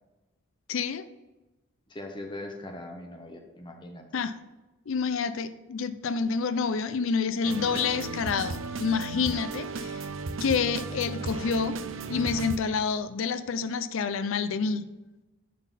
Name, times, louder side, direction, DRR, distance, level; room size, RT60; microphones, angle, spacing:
voice 1, 0.7-1.0 4.1-4.3 4.9-10.0 10.4-11.7 12.1-14.8, left 5 dB, 70° left, 11 dB, 0.5 m, -28 dB
voice 2, 1.9-4.1, left 1 dB, 25° left, 3 dB, 1.1 m, -40 dB
sound 1, 7.4-12.6, right 3 dB, 70° right, 0.6 m, -35 dB
11.0 x 4.1 x 4.1 m, 1.1 s
head